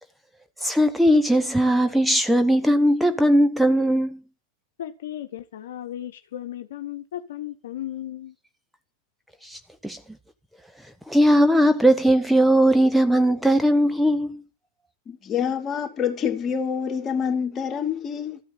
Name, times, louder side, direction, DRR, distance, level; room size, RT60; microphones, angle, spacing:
voice 1, 0.6-4.2 9.4-10.0 11.1-14.4, equal, ahead, 1.1 m, -19 dB
voice 2, 4.8-8.3, left 12 dB, 60° left, 1.3 m, -35 dB
voice 3, 15.1-18.4, left 7 dB, 25° left, 2.5 m, -27 dB
13.5 x 9.1 x 9.2 m
figure-of-eight pair, 90°, 0 cm